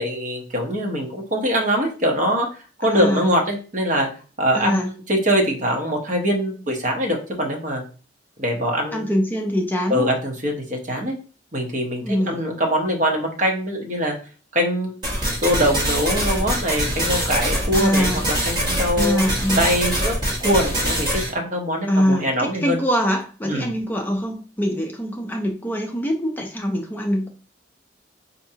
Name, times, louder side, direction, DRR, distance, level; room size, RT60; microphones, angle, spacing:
voice 1, 0.0-2.5 2.8-4.1 4.4-7.8 8.4-9.0 9.9-11.2 11.5-14.1 14.5-14.9 15.4-19.2 19.6-20.1 20.4-22.8 23.4-23.7, equal, 40° right, 1 dB, 0.9 m, -23 dB
voice 2, 2.8-3.3 4.5-4.9 8.9-10.1 12.0-12.4 17.7-18.2 19.0-19.6 21.9-27.3, equal, 10° left, 1 dB, 0.4 m, -23 dB
sound 1, 15.0-21.3, equal, 25° right, 1.3 m, -23 dB
4.5 x 2.6 x 2.8 m, 0.37 s
head